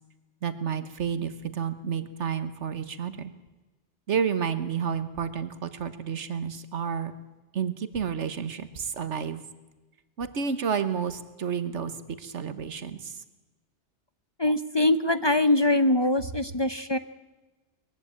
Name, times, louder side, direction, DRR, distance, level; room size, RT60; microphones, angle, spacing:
voice 1, 0.4-3.3 4.1-7.1 7.5-9.4 10.2-13.2, right 7 dB, 90° right, 11 dB, 1.5 m, -30 dB
voice 2, 14.4-17.0, left 2 dB, 30° left, 12 dB, 0.6 m, -23 dB
21.0 x 15.0 x 9.5 m, 1.1 s
omnidirectional pair, 1.2 m